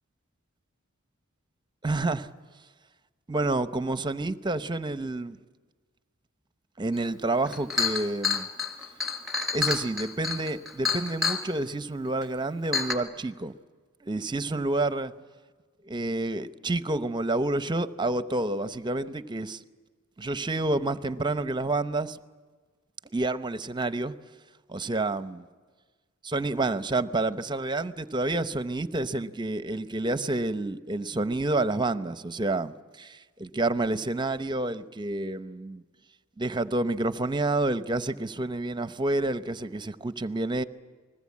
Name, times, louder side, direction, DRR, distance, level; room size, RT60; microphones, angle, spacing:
voice 1, 1.8-2.3 3.3-5.4 6.8-8.5 9.5-13.5 14.0-15.1 15.8-19.6 20.2-22.2 23.1-24.1 24.7-25.5 26.2-35.8 36.4-40.6, right 2 dB, 20° right, 0.7 m, -29 dB
Chink clink, 7.0-7.1 7.5-11.4 12.2-12.3 12.7-12.9, left 5 dB, ahead, 2.1 m, -28 dB
29.5 x 20.5 x 8.5 m
head